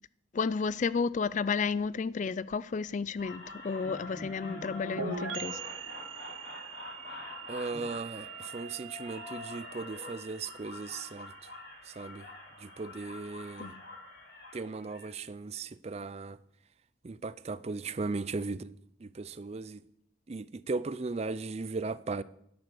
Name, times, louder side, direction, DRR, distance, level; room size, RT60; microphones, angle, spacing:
voice 1, 0.3-5.6 13.6-13.8, left 5 dB, 40° left, 0.3 m, -32 dB
sound 1, 3.2-15.2, left 2 dB, 55° left, 4.2 m, -45 dB
sound 2, 5.0-12.5, right 7 dB, 85° right, 0.9 m, -44 dB
voice 2, 7.5-11.5 11.8-12.3 12.6-13.7 14.5-16.4 17.0-18.7 19.0-19.8 20.3-22.2, right 3 dB, 35° right, 0.4 m, -37 dB
11.5 x 8.0 x 7.0 m
head